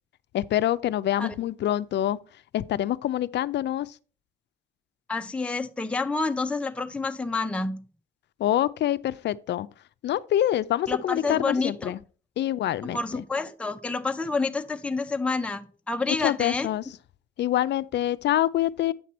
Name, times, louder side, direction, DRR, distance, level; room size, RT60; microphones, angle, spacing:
voice 1, 0.3-2.2 2.5-3.9 8.4-9.7 10.0-12.0 12.4-13.2 16.2-16.8 17.4-18.9, left 12 dB, 60° left, 0.5 m, -26 dB
voice 2, 5.1-7.8 10.9-11.9 12.8-16.7, left 3 dB, 5° left, 0.5 m, -28 dB
8.4 x 5.9 x 4.2 m
cardioid pair, 90°, 20 cm